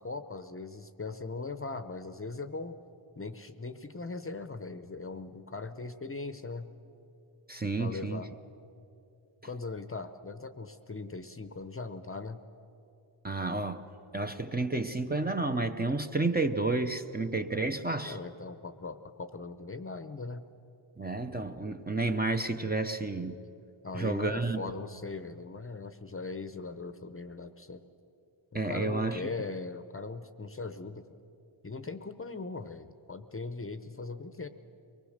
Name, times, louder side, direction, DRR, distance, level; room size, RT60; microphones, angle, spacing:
voice 1, 0.0-2.8 3.2-6.7 7.8-8.3 9.4-12.4 18.1-20.4 23.8-27.8 28.5-31.0 31.6-34.5, left 3 dB, 25° left, 10 dB, 0.7 m, -40 dB
voice 2, 7.5-8.2 13.2-18.2 21.0-23.4 23.9-24.6 28.5-29.2, right 3 dB, 20° right, 6 dB, 0.7 m, -31 dB
24.0 x 20.0 x 6.5 m, 2.9 s
wide cardioid pair, 115°, 49 cm